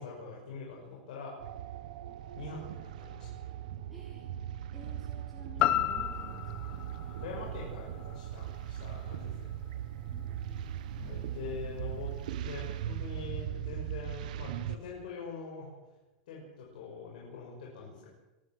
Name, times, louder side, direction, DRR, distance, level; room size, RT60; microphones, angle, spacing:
voice 1, 0.0-1.3 2.3-3.5 7.2-9.5 11.0-15.7 16.3-18.1, left 5 dB, 75° left, -3 dB, 6.4 m, -44 dB
sound 1, 1.4-14.8, right 11 dB, 70° right, 1.1 m, -39 dB
voice 2, 3.9-4.3 4.7-6.9 10.1-12.1, left 1 dB, 5° left, -4 dB, 3.6 m, -54 dB
sound 2, 5.6-9.7 10.1-10.2, left 13 dB, 25° left, 0.9 m, -34 dB
24.0 x 13.5 x 8.0 m, 1.0 s
supercardioid pair, 180°, 5 cm